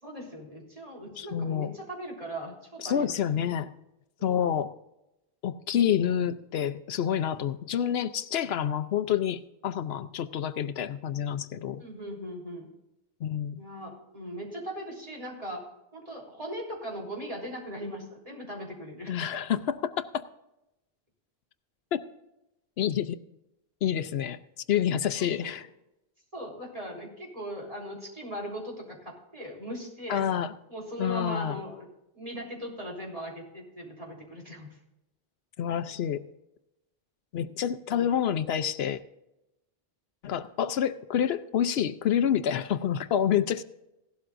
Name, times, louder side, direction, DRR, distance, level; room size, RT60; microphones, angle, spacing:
voice 1, 0.0-3.5 4.2-4.4 11.8-12.7 13.6-15.6 15.9-19.1 25.4-25.6 26.3-30.3 30.7-31.9 32.1-34.7 37.9-38.1, equal, 35° right, -2 dB, 3.8 m, -39 dB
voice 2, 1.2-1.7 2.8-3.7 4.2-4.7 5.4-11.8 13.2-13.6 19.1-20.2 21.9-22.0 22.8-23.2 23.8-24.4 24.7-25.7 30.1-30.5 31.0-31.6 35.6-36.2 37.3-39.0 40.2-43.6, left 9 dB, 80° left, 12 dB, 0.8 m, -28 dB
16.5 x 12.5 x 2.5 m, 0.90 s
omnidirectional pair, 1.0 m